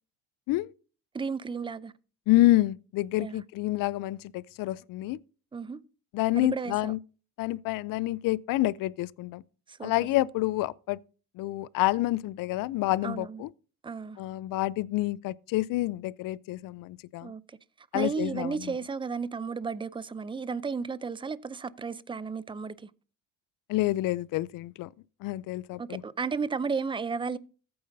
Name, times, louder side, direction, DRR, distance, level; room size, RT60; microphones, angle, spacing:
voice 1, 1.1-1.9 3.2-3.4 5.5-5.8 6.4-6.9 9.7-9.9 13.0-13.5 13.8-14.2 17.2-17.6 17.9-22.9 25.8-27.4, right 5 dB, 15° right, 0.5 m, -33 dB
voice 2, 2.3-5.2 6.1-7.0 7.4-9.4 9.8-11.0 11.4-13.5 14.2-17.3 17.9-18.7 23.7-24.9 25.2-26.0, left 17 dB, 60° left, 0.5 m, -28 dB
14.5 x 8.7 x 2.7 m
supercardioid pair, 85°, 37 cm